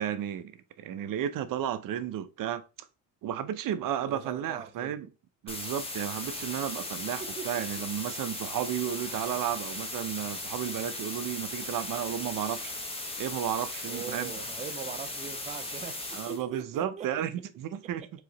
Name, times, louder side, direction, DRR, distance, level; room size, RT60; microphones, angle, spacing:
voice 1, 0.0-2.6 3.2-5.1 5.4-12.7 13.2-14.4 16.1-18.0, right 10 dB, 50° right, 0.7 m, -33 dB
voice 2, 4.0-5.0 7.2-7.6 13.9-17.1 18.0-18.1, right 7 dB, 20° right, 0.3 m, -41 dB
sound 1, 5.5-16.4, left 2 dB, 15° left, 0.9 m, -37 dB
4.8 x 2.8 x 3.8 m
cardioid pair, 130°, 44 cm